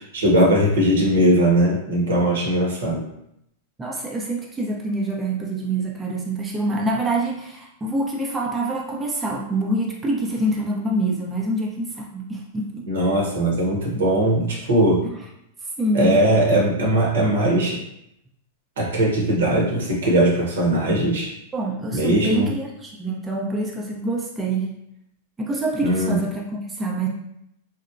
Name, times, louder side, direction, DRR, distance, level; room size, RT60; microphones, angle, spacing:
voice 1, 0.1-3.1 12.9-15.0 15.9-17.8 18.8-21.3 21.9-22.5 25.8-26.2, right 1 dB, 75° right, -2 dB, 0.8 m, -19 dB
voice 2, 3.8-12.9 15.0-15.1 15.8-16.2 21.5-24.8 25.4-27.1, right 1 dB, 15° right, -2 dB, 0.5 m, -26 dB
2.9 x 2.1 x 2.4 m, 0.78 s
hypercardioid pair, 105°, 0 cm